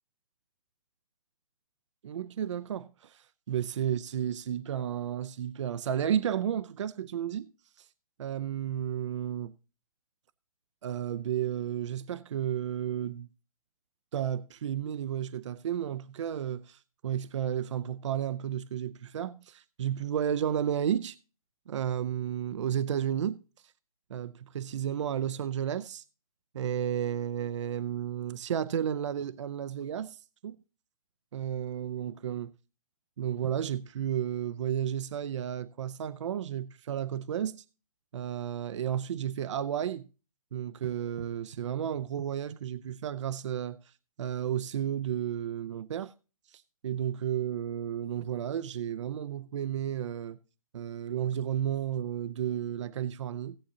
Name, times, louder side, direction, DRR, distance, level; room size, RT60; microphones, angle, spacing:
voice 1, 2.0-7.5 7.8-7.9 8.2-9.5 10.8-13.3 14.1-21.2 21.7-23.4 24.1-26.0 26.5-30.6 31.3-32.5 33.2-37.6 38.1-40.1 40.5-43.8 44.2-46.1 46.5-50.4 50.7-53.6, right 9 dB, 55° right, 0.5 m, -32 dB
17.5 x 8.2 x 2.8 m
figure-of-eight pair, 130°, 18 cm